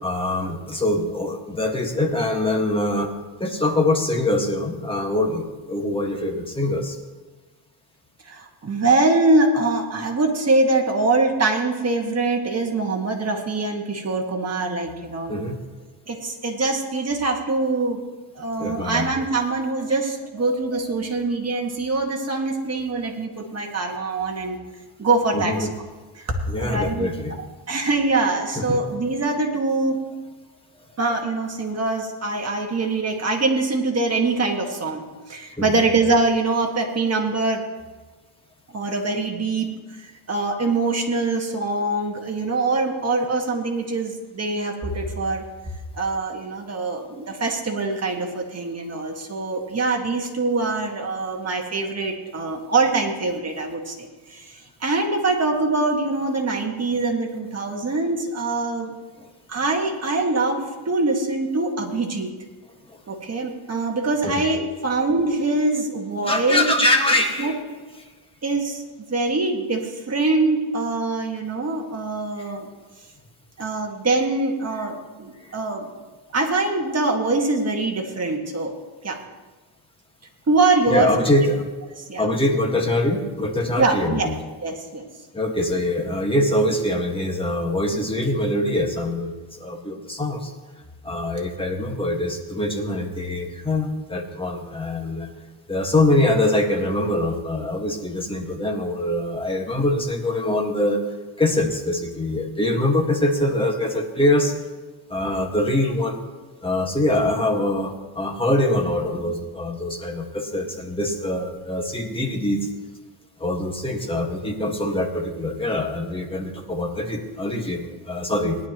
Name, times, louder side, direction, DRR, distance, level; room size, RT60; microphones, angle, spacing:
voice 1, 0.0-3.1 3.4-7.0 15.3-15.6 18.6-19.1 20.4-20.8 25.3-25.7 26.5-27.3 28.5-28.8 30.7-30.9 35.6-35.8 59.2-59.3 62.9-63.0 64.2-64.5 66.2-67.6 67.9-68.0 72.4-72.5 80.9-81.6 82.2-84.4 85.3-90.5 91.0-95.3 95.7-101.0 101.4-104.5 105.1-106.2 106.6-112.7 113.4-118.6, left 1 dB, 10° left, 1 dB, 1.7 m, -24 dB
voice 2, 8.3-15.3 16.1-18.0 18.4-24.6 25.0-25.5 26.2-26.3 26.6-27.1 27.4-30.0 31.0-35.0 35.3-37.6 38.7-39.7 40.3-45.4 46.0-54.5 54.8-58.9 59.5-62.3 63.1-66.7 67.4-67.5 68.4-68.8 69.1-72.7 73.6-75.9 76.3-78.7 79.0-79.2 80.5-81.3 82.1-82.3 83.8-84.3 84.6-85.1, right 3 dB, 30° right, 1 dB, 1.9 m, -23 dB
18.5 x 11.5 x 3.0 m, 1.3 s
cardioid pair, 130°, 49 cm